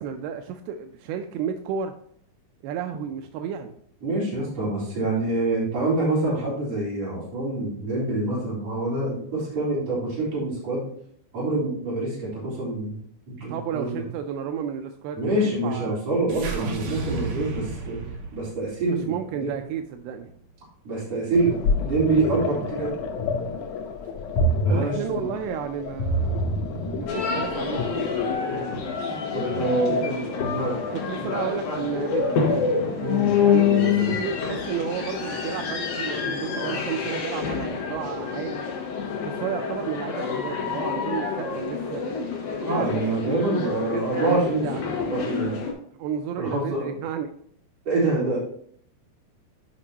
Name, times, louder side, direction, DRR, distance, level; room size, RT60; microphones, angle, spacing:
voice 1, 0.0-1.9 2.6-3.7 13.5-16.0 18.0-18.1 18.9-20.3 24.7-26.5 26.7-28.2 29.7-30.2 30.9-32.4 33.4-38.6 39.2-42.0 42.6-44.8 46.0-47.3, right 8 dB, 85° right, 6 dB, 2.5 m, -32 dB
voice 2, 4.0-10.8 11.3-13.0 13.3-14.0 15.2-18.0 18.3-19.1 19.4-19.6 20.8-23.0 24.6-25.2 28.5-28.7 29.3-30.8 31.2-31.3 33.0-34.2 36.6-36.9 42.6-44.6 45.1-45.6 46.4-47.0 47.8-48.4, right 2 dB, 40° right, -8 dB, 4.6 m, -26 dB
sound 1, 16.3-20.6, right 3 dB, 65° right, 1.9 m, -34 dB
sound 2, 21.3-28.3, left 1 dB, 90° left, 1.6 m, -27 dB
sound 3, 27.1-45.7, left 6 dB, 60° left, 2.6 m, -27 dB
11.0 x 5.3 x 2.8 m, 0.63 s
omnidirectional pair, 4.5 m